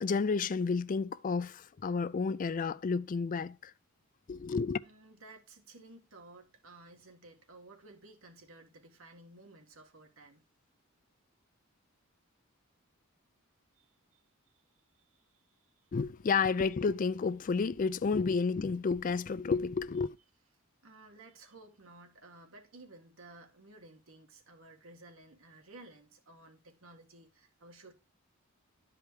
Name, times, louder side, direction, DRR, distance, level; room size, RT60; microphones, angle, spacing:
voice 1, 0.0-3.7 4.3-4.8 15.9-20.2, left 5 dB, 40° left, 0.4 m, -31 dB
voice 2, 4.8-10.4 13.7-14.6 14.9-15.7 20.8-27.9, right 2 dB, 70° right, 1.9 m, -55 dB
12.0 x 5.0 x 4.6 m
head